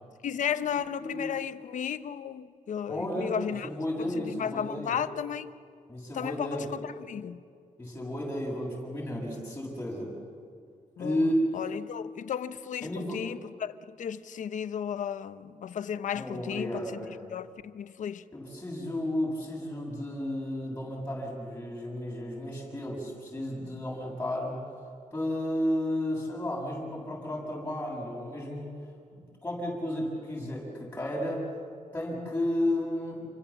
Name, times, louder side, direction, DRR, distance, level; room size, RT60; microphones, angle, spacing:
voice 1, 0.2-3.7 4.1-5.5 6.1-7.4 11.0-11.3 11.5-16.9 17.3-18.2, left 8 dB, 65° left, 0.9 m, -34 dB
voice 2, 1.0-1.3 2.9-5.0 5.9-6.7 7.8-10.1 11.0-11.6 12.8-13.2 16.1-17.2 18.3-24.6 25.1-28.8 29.4-31.5 31.9-33.3, left 1 dB, 10° left, 7.7 m, -32 dB
29.5 x 24.5 x 7.4 m
wide cardioid pair, 130°, 14 cm